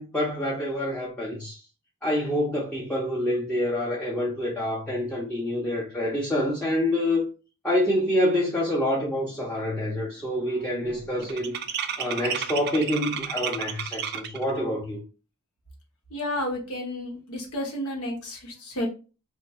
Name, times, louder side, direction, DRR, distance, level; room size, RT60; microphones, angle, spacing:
voice 1, 0.0-1.6 2.0-7.2 7.6-11.6 12.0-15.0, left 1 dB, 5° left, 0.6 m, -27 dB
sound 1, 9.2-9.6 9.9-14.5, right 8 dB, 45° right, 0.4 m, -33 dB
voice 2, 16.1-18.9, left 1 dB, 80° left, 1.1 m, -31 dB
2.6 x 2.5 x 4.1 m
head